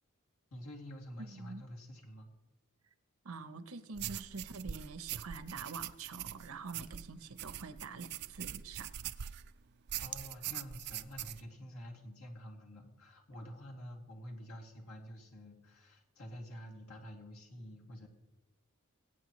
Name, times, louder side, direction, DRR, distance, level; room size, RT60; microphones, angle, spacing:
voice 1, 0.5-2.3 10.0-18.1, equal, 70° left, 2.5 m, -48 dB
voice 2, 1.2-1.6 3.2-9.0, right 4 dB, 70° right, 0.8 m, -46 dB
sound 1, 4.0-9.5 9.9-11.4, right 11 dB, 50° right, 0.4 m, -43 dB
22.5 x 8.9 x 3.1 m
head